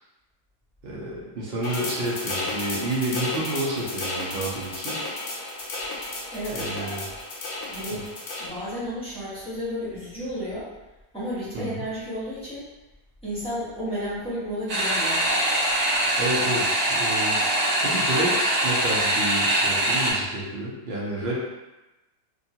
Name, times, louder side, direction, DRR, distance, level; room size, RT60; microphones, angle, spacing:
voice 1, 0.8-5.0 6.5-7.0 7.9-8.0 11.5-11.9 16.2-21.5, right 1 dB, 75° right, -6 dB, 0.5 m, -30 dB
sound 1, 1.6-8.5, left 2 dB, 75° left, 1.1 m, -33 dB
voice 2, 6.3-7.1 7.7-8.1 8.4-10.7 11.1-12.7 13.2-15.3, equal, 5° left, -11 dB, 0.6 m, -32 dB
sound 2, 14.7-20.1, right 1 dB, 60° right, 0.8 m, -23 dB
2.9 x 2.4 x 2.7 m, 1.0 s
omnidirectional pair, 1.9 m